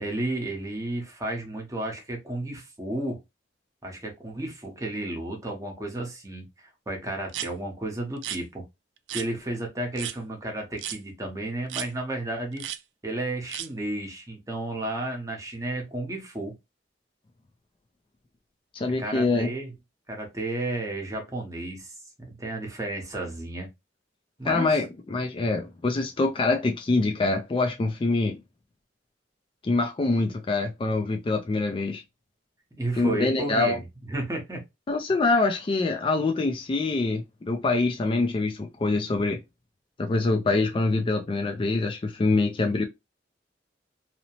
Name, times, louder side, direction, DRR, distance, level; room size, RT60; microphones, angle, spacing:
voice 1, 0.0-3.2 3.8-8.7 9.1-12.6 13.0-16.5 19.0-19.7 20.1-23.7 24.4-24.8 32.8-34.6, right 1 dB, 20° right, 0.8 m, -32 dB
sound 1, 7.3-7.5 8.2-8.4 9.1-9.3 10.0-10.2 10.8-11.0 11.7-11.9 12.6-12.8 13.5-13.7, right 11 dB, 75° right, 0.3 m, -33 dB
voice 2, 18.7-19.5 24.5-28.4 29.6-32.0 32.9-33.8 34.9-39.4 40.0-42.8, left 3 dB, 30° left, 0.3 m, -25 dB
2.7 x 2.0 x 2.8 m
head